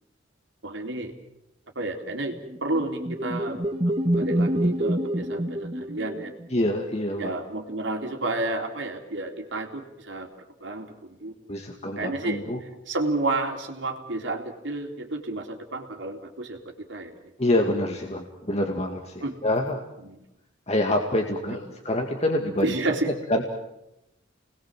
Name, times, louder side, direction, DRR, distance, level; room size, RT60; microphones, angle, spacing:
voice 1, 0.6-1.1 1.8-3.6 4.1-6.3 7.2-10.3 10.6-11.3 12.0-12.4 12.9-17.1 19.2-19.4 20.0-20.2 22.6-23.1, right 2 dB, 70° right, 3 dB, 3.6 m, -30 dB
sound 1, 2.4-6.5, right 1 dB, 30° right, 1.9 m, -26 dB
voice 2, 6.5-7.3 11.5-12.6 17.4-19.8 20.7-22.7 23.0-23.4, left 1 dB, 35° left, 2 dB, 2.1 m, -26 dB
30.0 x 20.5 x 7.6 m, 0.88 s
head